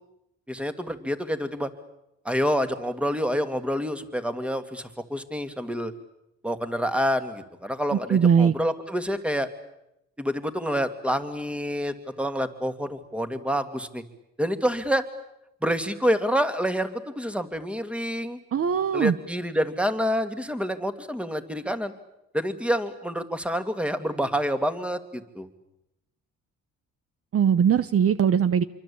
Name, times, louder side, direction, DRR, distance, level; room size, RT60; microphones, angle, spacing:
voice 1, 0.5-1.7 2.2-5.9 6.4-9.5 10.2-14.0 14.4-15.0 15.6-18.4 18.9-21.9 22.3-25.5, equal, 5° right, 9 dB, 2.5 m, -27 dB
voice 2, 8.1-8.5 18.5-19.1 27.3-28.6, right 7 dB, 50° right, 13 dB, 1.0 m, -20 dB
27.0 x 24.0 x 8.7 m, 0.87 s
cardioid pair, 90°, 30 cm